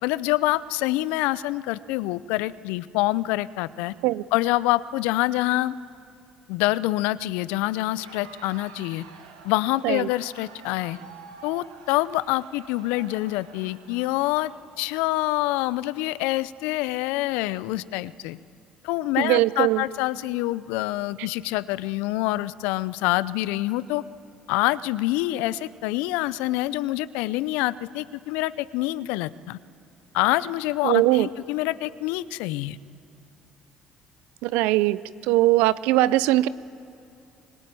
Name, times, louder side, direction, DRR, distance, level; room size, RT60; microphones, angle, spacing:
voice 1, 0.0-3.9 4.3-5.8 6.5-9.0 9.4-11.0 11.4-14.5 14.8-18.4 18.8-24.0 24.5-29.6 30.1-32.8, left 17 dB, 75° left, 18 dB, 0.7 m, -26 dB
Crowd, 7.8-15.3, right 5 dB, 90° right, 2.0 m, -48 dB
voice 2, 19.2-19.8 30.8-31.3 34.4-35.0 35.3-36.5, right 17 dB, 70° right, 18 dB, 0.6 m, -20 dB
25.5 x 23.5 x 9.2 m, 2.7 s
hypercardioid pair, 55°, 2 cm